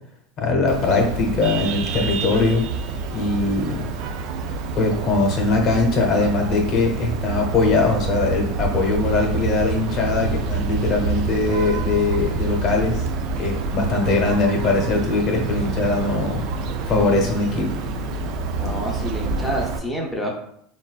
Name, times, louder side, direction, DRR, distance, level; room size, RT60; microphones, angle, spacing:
voice 1, 0.4-2.6 3.1-3.9 4.7-13.1 13.4-16.4 16.9-17.7, left 3 dB, 45° left, 2 dB, 0.8 m, -21 dB
Vehicle horn car horn honking, 0.7-19.8, right 4 dB, 60° right, 0.3 m, -27 dB
voice 2, 18.6-20.3, equal, 10° left, -1 dB, 0.6 m, -28 dB
3.8 x 2.2 x 2.3 m, 0.70 s
hypercardioid pair, 95°, 0 cm